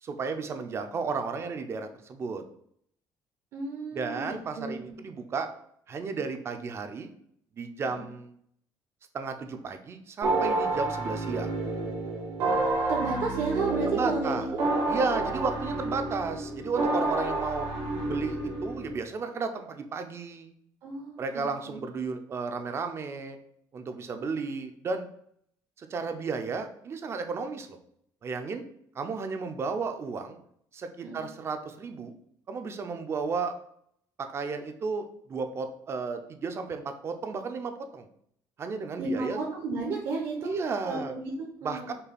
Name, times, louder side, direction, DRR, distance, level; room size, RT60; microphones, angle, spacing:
voice 1, 0.0-2.4 3.9-5.5 5.9-7.1 7.6-8.3 9.1-11.5 13.8-14.5 14.9-17.7 18.0-20.5 21.2-23.4 23.7-25.1 25.8-27.8 28.2-28.6 28.9-30.4 30.7-32.1 32.5-33.5 34.2-38.1 38.6-39.4 40.4-41.1 41.6-41.9, right 4 dB, 35° right, 7 dB, 0.5 m, -33 dB
voice 2, 3.5-4.9 12.9-14.5 15.1-15.5 20.8-21.8 31.0-31.2 39.0-40.5 40.8-41.9, right 3 dB, 65° right, -2 dB, 1.0 m, -33 dB
sound 1, 10.2-18.9, right 2 dB, 85° right, 1.2 m, -29 dB
5.4 x 2.3 x 4.2 m, 0.70 s
cardioid pair, 140°, 8 cm